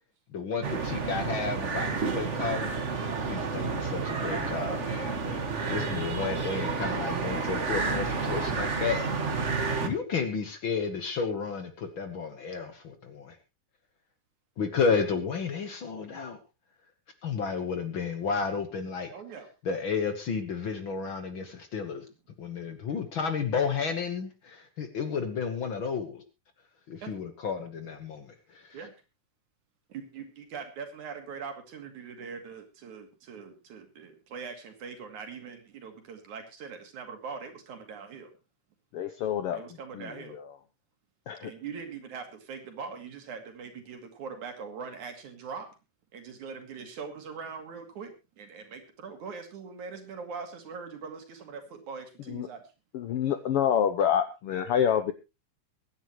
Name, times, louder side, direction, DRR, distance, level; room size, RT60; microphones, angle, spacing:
voice 1, 0.3-2.7 3.2-5.4 5.7-9.0 9.8-13.3 14.6-16.4 17.2-19.1 19.6-22.0 22.4-26.2 26.9-28.3, left 5 dB, 55° left, 8 dB, 1.7 m, -32 dB
sound 1, 0.6-9.9, right 4 dB, 40° right, 1.0 m, -30 dB
voice 2, 19.1-19.5 22.9-23.0 27.0-27.1 28.7-28.9 29.9-38.3 39.5-40.4 41.4-45.7 46.1-52.7, right 5 dB, 75° right, 5 dB, 3.8 m, -42 dB
voice 3, 38.9-39.6 41.3-41.5 52.3-52.5 52.9-55.1, left 9 dB, 70° left, 10 dB, 1.4 m, -26 dB
23.0 x 10.0 x 3.1 m, 0.27 s
omnidirectional pair, 3.4 m